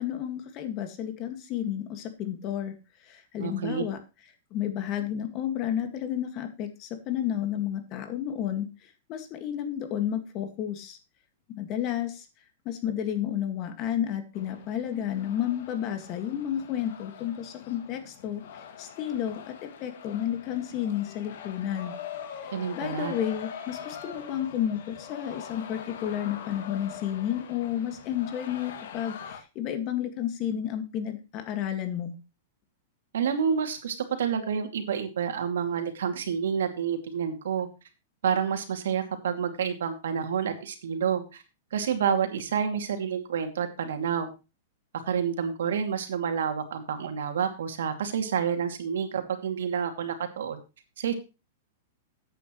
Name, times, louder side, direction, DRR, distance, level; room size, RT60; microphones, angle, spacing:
voice 1, 0.0-2.8 3.0-4.0 4.5-8.7 9.1-11.0 11.5-12.3 12.7-18.4 18.8-21.9 22.4-32.1, left 10 dB, 30° left, 7 dB, 1.9 m, -31 dB
voice 2, 3.4-3.8 22.5-23.1 33.1-37.7 38.2-41.4 41.7-44.3 44.9-50.6 51.0-51.1, right 7 dB, 85° right, 6 dB, 2.6 m, -29 dB
sound 1, 14.3-29.4, left 8 dB, 60° left, 2.3 m, -43 dB
13.5 x 9.2 x 3.2 m, 0.29 s
supercardioid pair, 160°, 0 cm